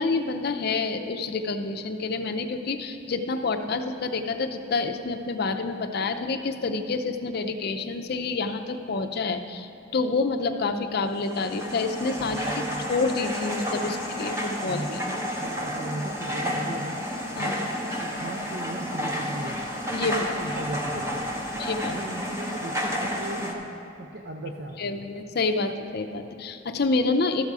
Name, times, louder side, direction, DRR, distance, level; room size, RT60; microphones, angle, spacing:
voice 1, 0.0-12.5 12.9-15.0 17.4-17.5 19.9-20.2 21.5-22.0 24.8-27.4, left 3 dB, 50° left, 6 dB, 0.5 m, -28 dB
sound 1, 11.1-23.5, equal, 15° right, 0.9 m, -31 dB
voice 2, 12.2-12.9 13.8-14.0 14.6-17.0 17.4-19.7 20.0-21.3 21.9-23.7 24.0-25.0, right 1 dB, 55° right, 2 dB, 0.6 m, -37 dB
13.0 x 6.7 x 4.7 m, 2.8 s
head